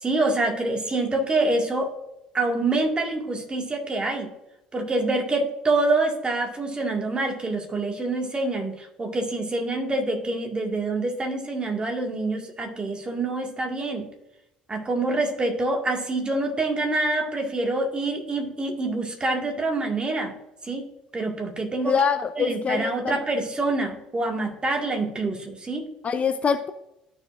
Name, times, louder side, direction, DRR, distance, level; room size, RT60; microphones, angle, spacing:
voice 1, 0.0-1.9 2.3-4.3 4.7-14.1 14.7-20.3 20.6-22.0 22.4-25.9, right 2 dB, 25° right, 2 dB, 2.0 m, -26 dB
voice 2, 21.8-23.2 26.0-26.7, left 6 dB, 30° left, 11 dB, 0.5 m, -24 dB
13.5 x 4.8 x 2.6 m, 0.86 s
figure-of-eight pair, 60°, 4 cm